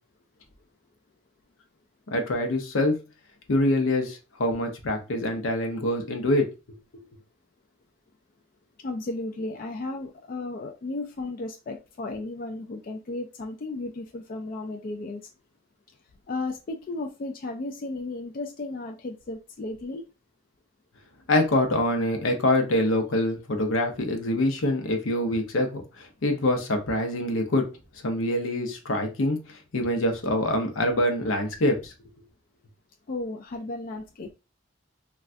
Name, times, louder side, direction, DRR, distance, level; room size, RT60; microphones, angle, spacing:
voice 1, 2.1-3.0 3.5-6.5 21.3-27.7 28.0-31.9, left 1 dB, 85° left, 0.7 m, -25 dB
voice 2, 8.8-15.3 16.3-20.0 33.1-34.3, left 2 dB, 45° left, 0.3 m, -34 dB
3.3 x 2.3 x 2.5 m
head